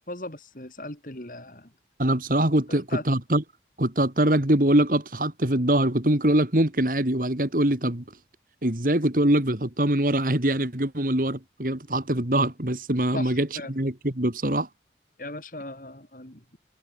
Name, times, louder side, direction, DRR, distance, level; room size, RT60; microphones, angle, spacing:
voice 1, 0.0-1.7 2.7-3.0 13.1-13.7 15.2-16.6, left 2 dB, 50° left, 3.4 m, -38 dB
voice 2, 2.0-3.4 3.8-8.0 8.6-14.7, right 1 dB, 50° right, 2.4 m, -23 dB
head